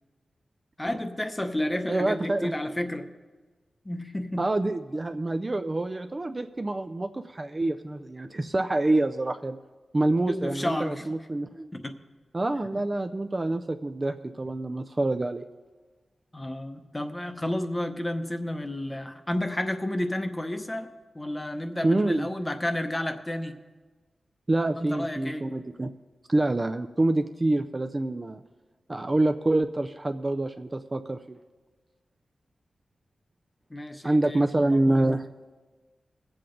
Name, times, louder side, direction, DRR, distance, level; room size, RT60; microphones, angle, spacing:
voice 1, 0.8-3.1 3.8-4.5 10.3-11.1 11.7-12.0 12.5-12.8 16.3-20.9 21.1-23.6 24.7-25.5 33.7-35.0, left 1 dB, 15° left, 6 dB, 0.8 m, -31 dB
voice 2, 1.9-2.5 4.4-9.6 9.9-11.7 12.3-15.4 21.8-22.3 24.5-25.9 26.3-28.4 28.9-31.4 34.0-35.3, right 2 dB, 25° right, 6 dB, 0.4 m, -26 dB
21.0 x 7.7 x 3.8 m, 1.3 s
wide cardioid pair, 130°, 0 cm